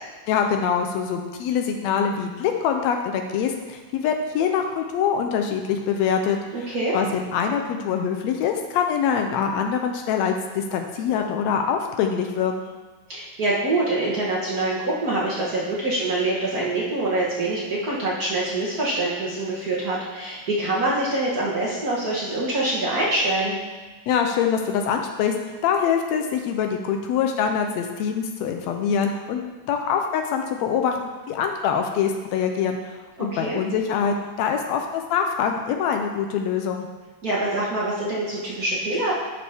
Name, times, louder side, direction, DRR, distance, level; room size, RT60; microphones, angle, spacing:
voice 1, 0.3-12.7 24.1-25.3 25.6-36.9, left 7 dB, 85° left, 4 dB, 1.5 m, -24 dB
voice 2, 6.5-6.9 13.1-23.6 33.2-33.6 37.2-39.1, right 2 dB, 60° right, -7 dB, 0.9 m, -25 dB
11.0 x 6.1 x 3.5 m, 1.3 s
omnidirectional pair, 3.7 m